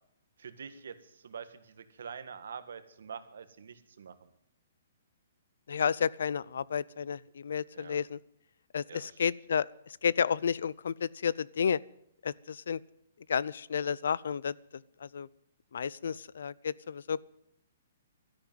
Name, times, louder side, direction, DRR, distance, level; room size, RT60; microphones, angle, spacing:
voice 1, 0.4-4.3 7.7-8.0 8.9-9.2 16.0-16.2, right 6 dB, 75° right, 10 dB, 1.7 m, -46 dB
voice 2, 5.7-8.2 8.7-11.8 12.2-12.8 13.3-15.3 15.7-17.2, left 7 dB, 70° left, 22 dB, 0.5 m, -31 dB
13.0 x 11.0 x 9.2 m, 0.74 s
hypercardioid pair, 160°, 0 cm